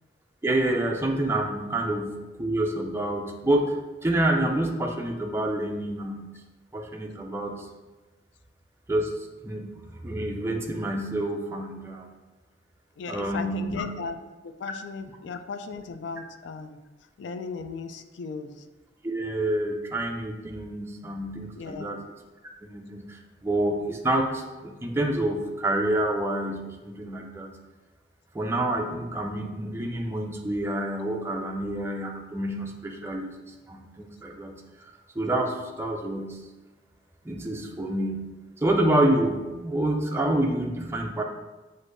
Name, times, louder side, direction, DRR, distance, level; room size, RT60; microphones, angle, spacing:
voice 1, 0.4-6.3 6.7-7.7 8.9-12.1 13.1-13.9 19.0-22.0 22.6-27.5 28.3-36.4 37.2-38.3 38.6-41.2, right 1 dB, 15° right, 1 dB, 0.4 m, -28 dB
voice 2, 13.0-14.2 14.4-16.8 17.2-18.6 21.6-21.9, left 4 dB, 70° left, 8 dB, 0.3 m, -36 dB
6.2 x 2.6 x 2.5 m, 1.2 s
head